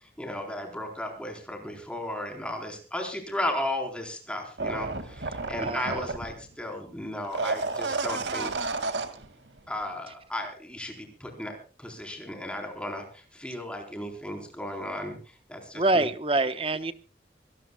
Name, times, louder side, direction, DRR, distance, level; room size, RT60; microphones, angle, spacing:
voice 1, 0.2-8.5 9.7-16.1, left 1 dB, 5° left, 4.2 m, -35 dB
sound 1, 4.6-6.5 7.2-9.3 9.6-9.7, right 3 dB, 80° right, 2.3 m, -31 dB
voice 2, 5.6-6.1 15.7-16.9, right 2 dB, 30° right, 1.1 m, -26 dB
25.0 x 18.0 x 2.3 m
head